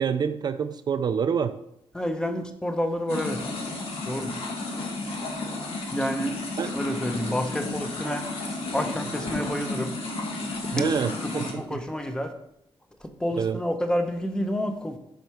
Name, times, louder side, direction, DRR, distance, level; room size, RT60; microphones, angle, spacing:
voice 1, 0.0-1.5 6.6-6.7 10.7-11.8 13.4-13.6, right 7 dB, 45° right, 10 dB, 0.3 m, -27 dB
voice 2, 1.9-3.4 4.1-4.3 5.9-6.4 6.7-8.3 8.7-9.9 10.8-12.3 13.2-15.0, equal, 10° left, 6 dB, 0.7 m, -29 dB
sound 1, 3.1-11.5, left 2 dB, 80° left, 1.7 m, -32 dB
7.6 x 4.6 x 5.6 m, 0.78 s
wide cardioid pair, 175°, 10 cm